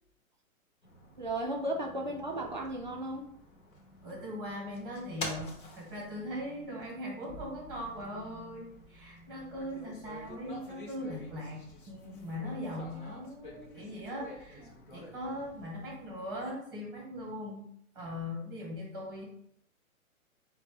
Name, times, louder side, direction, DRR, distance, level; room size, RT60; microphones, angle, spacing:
sound 1, 0.8-16.5, left 1 dB, 35° left, 0.7 m, -48 dB
voice 1, 1.2-3.3, right 1 dB, 35° right, 1 dB, 0.4 m, -35 dB
voice 2, 4.0-14.7 14.9-17.7 17.9-19.2, left 1 dB, 15° right, -2 dB, 0.9 m, -40 dB
3.9 x 2.2 x 4.4 m, 0.70 s
hypercardioid pair, 180°, 42 cm